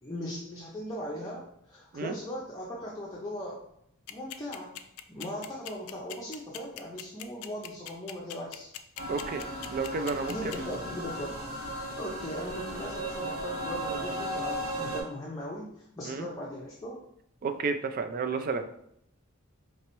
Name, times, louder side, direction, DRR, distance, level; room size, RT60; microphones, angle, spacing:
voice 1, 0.0-3.6 4.1-4.7 5.1-8.7 10.2-11.3 11.6-15.7 16.0-17.0, equal, 15° left, -4 dB, 0.6 m, -39 dB
sound 1, 4.1-10.7, left 12 dB, 90° left, 0.4 m, -40 dB
sound 2, 9.0-15.0, right 1 dB, 75° right, 1.6 m, -36 dB
voice 2, 9.1-10.7 16.1-16.3 17.4-18.7, right 4 dB, 40° right, 8 dB, 0.3 m, -32 dB
4.4 x 2.9 x 3.0 m, 0.73 s
head